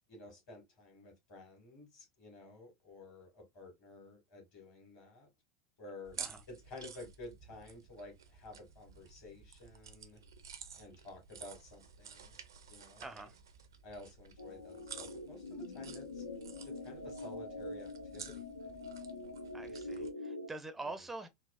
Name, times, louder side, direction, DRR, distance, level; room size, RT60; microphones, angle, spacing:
voice 1, 0.1-5.3 5.8-6.2 6.5-10.2 10.8-12.4 12.7-13.3 13.8-16.2 16.6-18.9 20.8-21.0, left 2 dB, 50° left, 2.0 m, -52 dB
sound 1, 6.0-20.1, right 7 dB, 70° right, 0.5 m, -52 dB
voice 2, 13.0-13.3 19.5-21.3, right 2 dB, 10° right, 0.5 m, -45 dB
sound 2, 14.4-20.5, left 2 dB, 80° left, 0.6 m, -44 dB
3.9 x 2.4 x 2.3 m
figure-of-eight pair, 80°, 2 cm